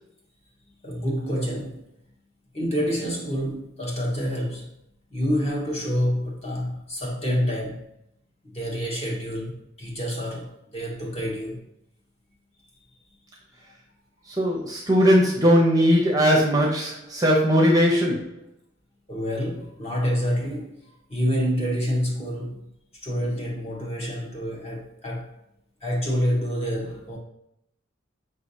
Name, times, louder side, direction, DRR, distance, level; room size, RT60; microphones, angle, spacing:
voice 1, 0.8-1.8 2.5-4.7 5.1-7.9 8.4-11.6 19.1-22.7 23.0-25.4 25.8-27.2, equal, 30° left, 1.2 m, -27 dB
voice 2, 14.4-18.3, equal, 15° right, 0.7 m, -19 dB
5.4 x 3.3 x 2.7 m
head